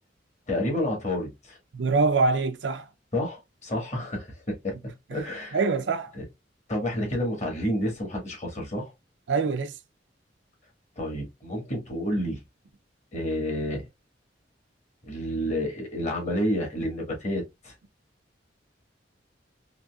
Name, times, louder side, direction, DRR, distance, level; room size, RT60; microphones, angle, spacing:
voice 1, 0.5-1.6 3.1-4.7 5.1-5.6 6.1-6.2 6.7-8.9 11.0-12.4 13.1-13.8 15.1-17.7, equal, 40° left, 1.5 m, -29 dB
voice 2, 1.7-2.9 5.5-6.1 9.3-9.7, right 4 dB, 80° right, 0.5 m, -24 dB
3.9 x 2.7 x 2.3 m
head